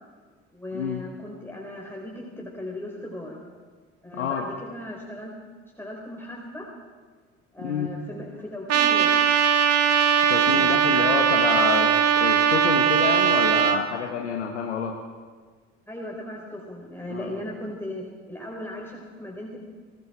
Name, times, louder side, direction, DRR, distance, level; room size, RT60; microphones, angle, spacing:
voice 1, 0.5-3.4 4.0-5.3 5.8-6.7 7.5-9.2 10.4-11.1 15.9-19.6, left 1 dB, 5° left, -2 dB, 5.0 m, -37 dB
voice 2, 4.1-4.5 7.6-7.9 10.3-15.0 17.1-17.3, left 7 dB, 85° left, 1 dB, 1.5 m, -28 dB
Trumpet, 8.7-13.8, right 8 dB, 45° right, 2.1 m, -20 dB
29.5 x 19.5 x 4.6 m, 1.5 s
figure-of-eight pair, 50°, 34 cm